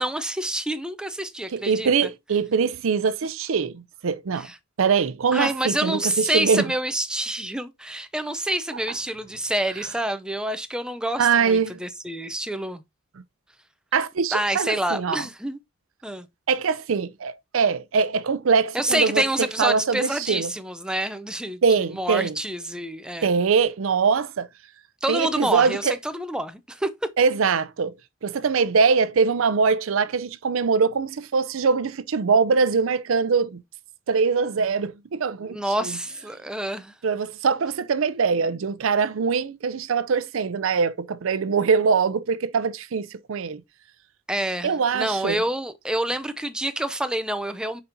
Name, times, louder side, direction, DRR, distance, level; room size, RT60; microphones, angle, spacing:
voice 1, 0.0-2.1 4.4-4.6 5.3-12.8 14.3-15.6 16.0-16.3 18.7-21.6 21.9-23.3 25.0-26.9 35.4-36.9 44.3-47.8, right 1 dB, 5° right, 0.5 m, -27 dB
voice 2, 1.5-4.5 4.8-6.7 11.2-11.8 13.9-15.2 16.5-19.2 19.6-20.5 21.6-22.3 23.2-24.5 25.1-26.0 27.2-27.9 28.2-33.6 34.1-36.0 37.0-43.6 44.6-45.4, right 5 dB, 75° right, 0.5 m, -23 dB
6.9 x 5.1 x 2.6 m
head